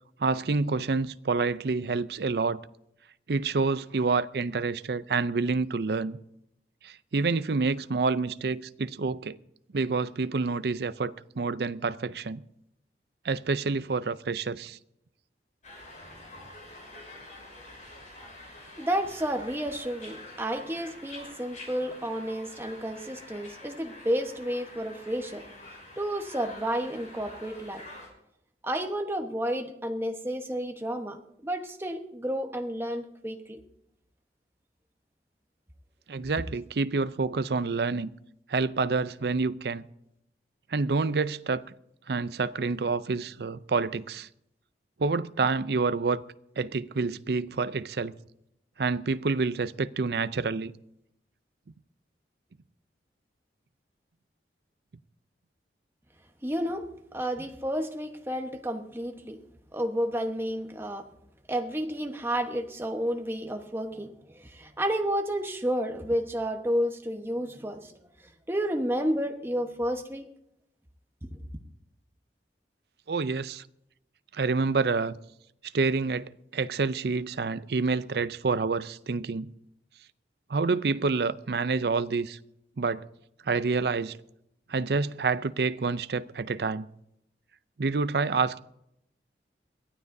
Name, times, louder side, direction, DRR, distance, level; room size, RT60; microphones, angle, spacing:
voice 1, 0.2-2.6 3.3-6.2 6.8-9.4 9.7-12.4 13.2-14.8 36.1-38.1 38.5-39.8 40.7-41.6 42.1-44.3 45.0-46.2 46.6-48.2 48.8-50.7 73.1-73.6 74.3-75.2 75.7-79.5 80.5-82.4 82.8-83.0 83.5-84.2 84.7-86.9 87.8-88.6, right 4 dB, 65° right, 0.5 m, -28 dB
sound 1, 15.6-28.1, left 2 dB, 45° left, 6.1 m, -47 dB
voice 2, 18.8-25.4 26.0-27.8 28.6-31.2 31.4-33.6 56.4-56.8 57.1-59.4 59.7-61.1 61.5-68.0 68.5-70.2, equal, 15° right, 1.1 m, -31 dB
22.5 x 14.5 x 2.7 m
head